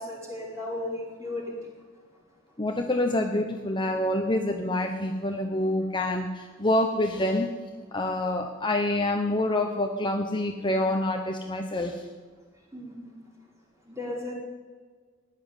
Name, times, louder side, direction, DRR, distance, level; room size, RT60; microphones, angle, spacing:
voice 1, 0.0-1.5 12.7-13.0 13.9-14.3, left 2 dB, 15° right, -3 dB, 4.9 m, -35 dB
voice 2, 2.6-7.5 7.9-12.0, left 1 dB, 25° left, 3 dB, 1.0 m, -27 dB
15.0 x 10.5 x 9.2 m, 1.5 s
head